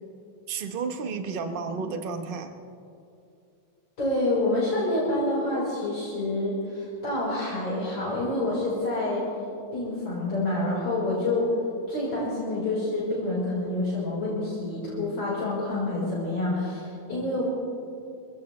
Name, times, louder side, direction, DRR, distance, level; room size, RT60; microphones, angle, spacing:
voice 1, 0.5-2.5, right 5 dB, 45° right, 7 dB, 0.7 m, -32 dB
voice 2, 4.0-9.3 9.7-11.5 11.9-17.4, left 2 dB, 60° left, -9 dB, 5.2 m, -27 dB
26.5 x 16.5 x 3.2 m, 2.6 s
omnidirectional pair, 2.3 m